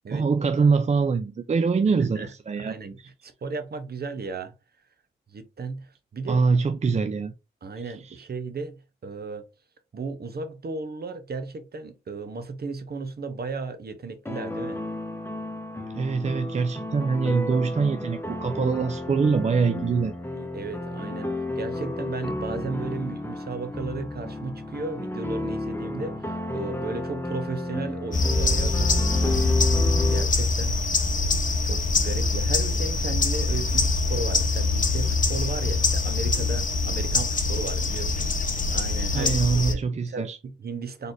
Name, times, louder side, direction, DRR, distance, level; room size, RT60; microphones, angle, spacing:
voice 1, 0.1-3.1 6.3-7.3 7.8-8.2 15.9-20.2 39.1-40.4, right 4 dB, 35° right, 0.5 m, -24 dB
voice 2, 2.6-4.5 5.3-6.4 7.6-9.5 9.9-14.8 18.5-18.7 20.3-29.4 30.0-30.8 31.6-38.3 38.7-41.1, right 4 dB, 50° right, 0.9 m, -35 dB
sound 1, 14.2-30.2, left 2 dB, 10° left, 1.1 m, -32 dB
sound 2, 28.1-39.7, left 3 dB, 40° left, 0.9 m, -24 dB
4.0 x 3.5 x 2.6 m
supercardioid pair, 45°, 20 cm